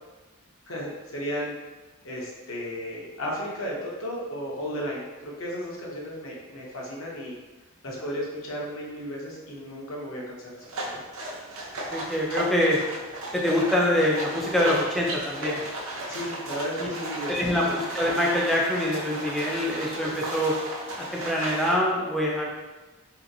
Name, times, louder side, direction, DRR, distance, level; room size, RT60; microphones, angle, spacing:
voice 1, 0.7-1.5 2.0-7.3 7.8-11.1 16.1-17.5, equal, 70° left, -3 dB, 0.7 m, -34 dB
sound 1, 10.6-21.8, right 1 dB, 80° right, 0.7 m, -34 dB
voice 2, 11.9-12.8 13.3-15.6 16.8-16.9 17.3-20.5 21.0-22.5, left 1 dB, ahead, -4 dB, 0.4 m, -25 dB
2.8 x 2.5 x 2.6 m, 1.2 s
head